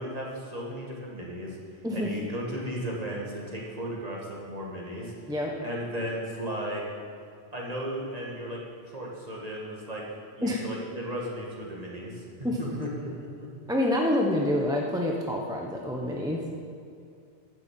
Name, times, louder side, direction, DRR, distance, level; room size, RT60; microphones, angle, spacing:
voice 1, 0.0-1.6 1.9-5.1 5.6-6.8 7.5-8.6 8.9-12.2 12.6-13.5, equal, 30° right, -3 dB, 2.2 m, -35 dB
voice 2, 13.7-16.4, left 1 dB, 5° right, 0 dB, 0.9 m, -27 dB
11.5 x 7.4 x 7.6 m, 2.4 s
omnidirectional pair, 1.3 m